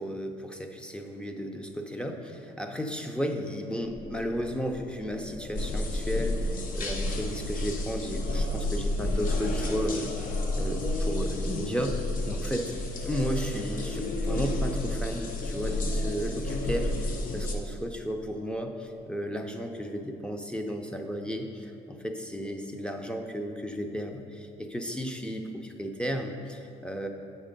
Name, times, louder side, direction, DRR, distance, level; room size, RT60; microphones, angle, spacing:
voice 1, 0.0-6.5 6.7-10.1 10.5-12.0 12.3-12.7 13.1-27.1, equal, 5° left, 4 dB, 0.6 m, -34 dB
sound 1, 3.8-9.5, left 1 dB, 30° left, 1.1 m, -45 dB
sound 2, 5.5-17.5, left 1 dB, 55° left, 0.9 m, -30 dB
6.7 x 5.4 x 5.2 m, 2.5 s
cardioid pair, 110°, 17 cm